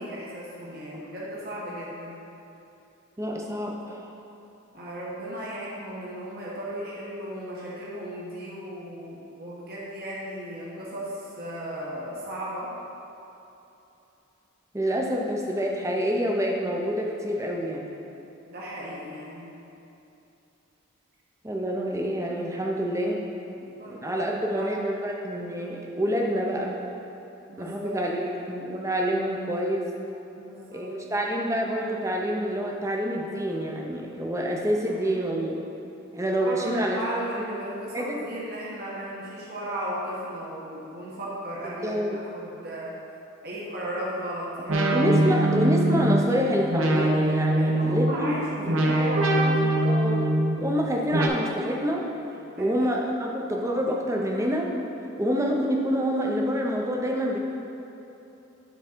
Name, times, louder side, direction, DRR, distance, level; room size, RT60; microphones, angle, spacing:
voice 1, 0.0-2.2 4.7-12.7 18.5-19.5 23.4-24.7 27.5-27.9 28.4-28.5 30.4-30.9 34.9-35.0 36.2-42.0 42.3-42.9 43.4-44.9 47.5-49.9 52.6-52.7, equal, 50° right, -6 dB, 1.2 m, -35 dB
voice 2, 3.2-4.1 14.7-17.9 21.4-23.2 23.9-26.8 27.6-28.2 28.5-29.9 30.7-35.6 36.1-37.0 37.9-38.2 41.6-42.2 44.6-48.4 48.6-48.9 49.6-50.2 50.5-52.0 52.6-54.8 55.2-57.4, equal, 15° right, -1 dB, 0.6 m, -27 dB
sound 1, 44.7-51.3, right 1 dB, 75° right, 0.8 m, -23 dB
11.0 x 3.8 x 4.4 m, 2.9 s
head